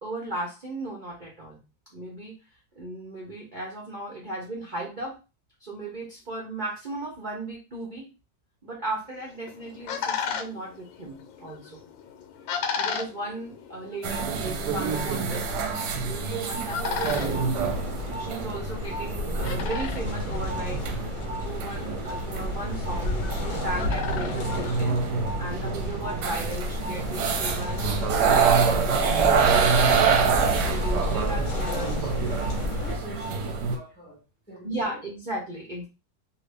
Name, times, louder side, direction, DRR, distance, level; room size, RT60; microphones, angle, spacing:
voice 1, 0.0-1.6 1.9-2.4 2.8-5.2 5.6-8.1 8.6-11.8 12.8-15.5 16.0-17.8 18.2-25.0 25.3-31.9 34.6-35.9, right 1 dB, 55° right, 0.5 m, -36 dB
sound 1, 9.2-25.5, left 7 dB, 85° left, 1.4 m, -37 dB
sound 2, 14.0-33.8, right 5 dB, 70° right, 1.1 m, -26 dB
sound 3, 17.0-33.0, left 1 dB, 55° left, 1.0 m, -32 dB
voice 2, 31.8-32.1 32.7-35.0, equal, 15° left, 0.4 m, -43 dB
2.9 x 2.6 x 3.3 m
omnidirectional pair, 2.0 m